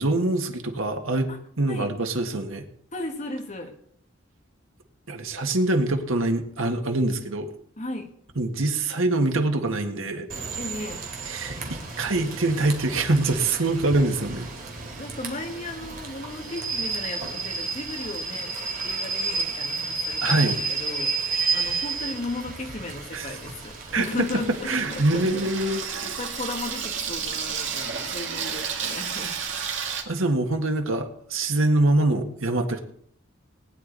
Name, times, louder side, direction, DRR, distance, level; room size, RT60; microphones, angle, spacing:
voice 1, 0.0-1.3 1.6-2.7 5.1-7.5 8.3-10.3 11.3-14.5 20.2-20.6 23.1-23.4 23.9-24.0 24.6-26.1 28.5-28.6 30.0-32.8, right 2 dB, 90° right, 5 dB, 1.7 m, -24 dB
voice 2, 2.9-3.8 7.8-8.1 10.6-11.0 15.0-18.6 18.8-25.5 25.9-29.4, left 2 dB, 35° left, 3 dB, 1.7 m, -35 dB
Rain / Train, 10.3-25.8, right 4 dB, 45° right, 2.6 m, -32 dB
Water tap faucet / Sink (filling or washing), 22.9-30.0, right 6 dB, 65° right, 2.2 m, -32 dB
19.5 x 10.0 x 4.0 m, 0.64 s
head